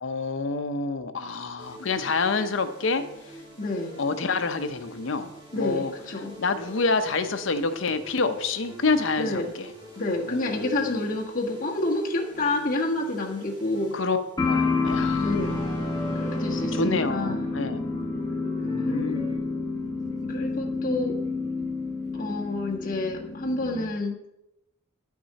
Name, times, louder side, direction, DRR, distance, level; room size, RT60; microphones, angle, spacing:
voice 1, 0.0-3.0 4.0-5.9 6.4-9.7 10.2-11.0 13.9-15.2 16.7-17.9 18.6-19.4, left 4 dB, 70° left, 9 dB, 0.7 m, -28 dB
sound 1, 1.6-19.4, right 2 dB, 25° right, 2.3 m, -44 dB
voice 2, 3.6-3.9 5.5-6.4 9.2-9.5 9.9-14.0 15.2-15.6 16.2-17.5 18.8-19.0 20.2-21.2 22.2-24.2, left 2 dB, 40° left, -1 dB, 1.5 m, -29 dB
sound 2, 14.4-23.9, left 3 dB, 20° left, 1.1 m, -29 dB
10.0 x 6.1 x 4.2 m, 0.86 s
head